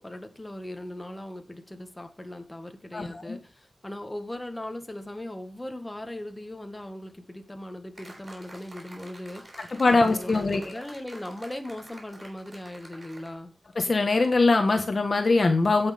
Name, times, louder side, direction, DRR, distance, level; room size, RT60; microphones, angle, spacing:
voice 1, 0.0-13.5, left 1 dB, 15° left, 6 dB, 1.8 m, -39 dB
voice 2, 2.9-3.4 9.7-10.8 13.7-15.9, left 3 dB, 50° left, 6 dB, 1.3 m, -22 dB
sound 1, 8.0-13.3, right 1 dB, 45° right, 5.2 m, -48 dB
16.5 x 6.4 x 3.5 m, 0.31 s
wide cardioid pair, 80°, 0 cm